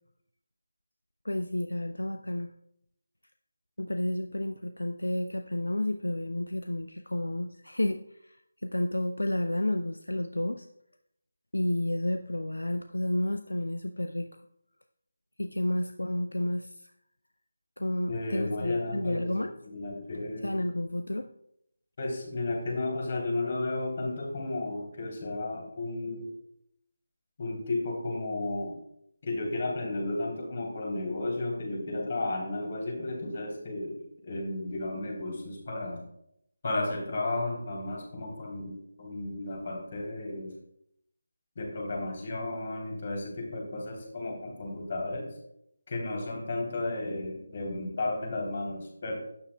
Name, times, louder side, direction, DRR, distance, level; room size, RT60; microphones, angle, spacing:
voice 1, 1.2-2.5 3.8-8.4 8.6-10.7 11.5-14.3 15.4-16.9 17.8-19.5 20.4-21.3, left 1 dB, 75° left, 8 dB, 0.5 m, -31 dB
voice 2, 18.1-19.3 19.7-20.5 22.0-26.3 27.4-28.8 29.2-36.0 36.6-40.6 41.5-45.3 45.9-49.1, left 2 dB, 40° left, 0 dB, 3.3 m, -33 dB
12.0 x 9.6 x 2.3 m, 0.75 s
figure-of-eight pair, 155°, 0 cm